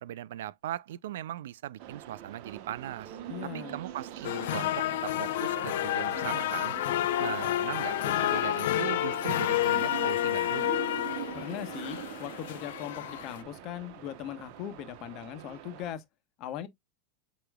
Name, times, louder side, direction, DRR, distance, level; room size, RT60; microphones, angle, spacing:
voice 1, 0.0-3.2 3.5-6.7 7.2-10.7, right 12 dB, 80° right, 0.3 m, -39 dB
sound 1, 1.8-15.9, right 11 dB, 60° right, 0.9 m, -43 dB
voice 2, 3.3-3.8 11.3-16.0 16.4-16.7, left 11 dB, 45° left, 1.1 m, -39 dB
sound 2, 4.2-13.4, left 14 dB, 75° left, 0.6 m, -30 dB
7.9 x 3.0 x 2.2 m
hypercardioid pair, 120°, 0 cm